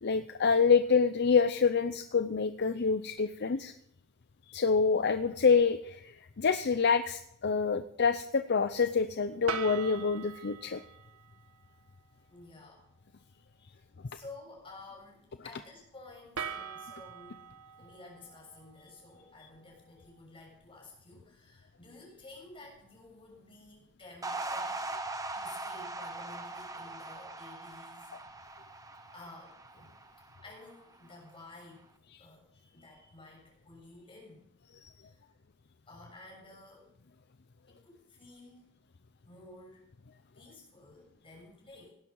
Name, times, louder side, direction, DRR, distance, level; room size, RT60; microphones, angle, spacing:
voice 1, 0.0-3.7 4.5-10.8, left 5 dB, 50° left, 11 dB, 0.6 m, -27 dB
sound 1, 9.5-11.5 16.3-19.5, right 7 dB, 85° right, 1.5 m, -42 dB
voice 2, 12.3-12.8 13.7-13.8 14.1-17.5 17.8-24.7 25.3-28.1 29.1-30.0 30.4-31.9 32.2-34.5 35.0-35.2 35.9-36.9 37.7-38.7 39.2-39.9 40.3-41.9, left 2 dB, 25° left, -1 dB, 6.9 m, -52 dB
sound 2, 24.2-30.7, right 2 dB, 15° right, 1.1 m, -40 dB
18.0 x 11.0 x 5.5 m, 0.75 s
head